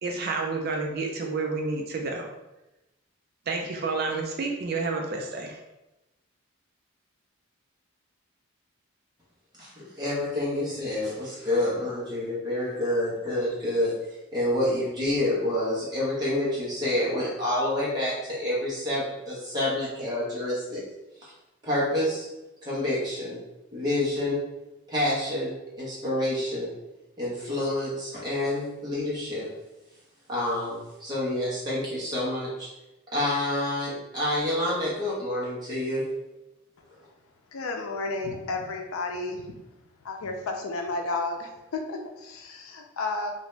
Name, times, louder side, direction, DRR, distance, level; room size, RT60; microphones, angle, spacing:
voice 1, 0.0-2.3 3.5-5.6, right 3 dB, 45° right, 1 dB, 0.4 m, -30 dB
voice 2, 9.6-13.9 14.3-20.8 21.2-21.3 21.6-22.3 22.6-23.4 23.7-24.4 24.9-26.7 27.2-29.5 30.3-32.7 33.1-36.0, left 1 dB, 20° right, -8 dB, 1.2 m, -28 dB
voice 3, 37.5-39.4 40.0-43.3, left 3 dB, 90° left, 3 dB, 0.5 m, -32 dB
2.9 x 2.6 x 3.2 m, 0.98 s
head